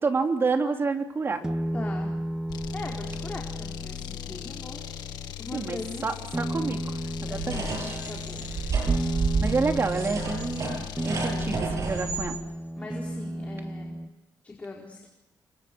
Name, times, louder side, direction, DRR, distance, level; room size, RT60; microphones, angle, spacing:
voice 1, 0.0-1.4 5.5-8.0 9.4-10.7 11.0-12.4, right 4 dB, 35° right, 4 dB, 3.4 m, -29 dB
sound 1, 1.4-5.3 6.3-14.1, right 1 dB, 10° right, 1.2 m, -33 dB
voice 2, 1.7-2.2 2.7-4.8 5.4-6.0 7.3-7.7 8.1-8.5 11.1-11.6 12.7-13.9 14.4-15.1, left 3 dB, 20° left, -1 dB, 4.8 m, -40 dB
sound 2, 2.5-11.7, left 12 dB, 90° left, 1.5 m, -39 dB
sound 3, 7.4-12.3, right 4 dB, 50° right, 7.6 m, -30 dB
30.0 x 25.5 x 6.3 m, 1.0 s
cardioid pair, 130°, 7 cm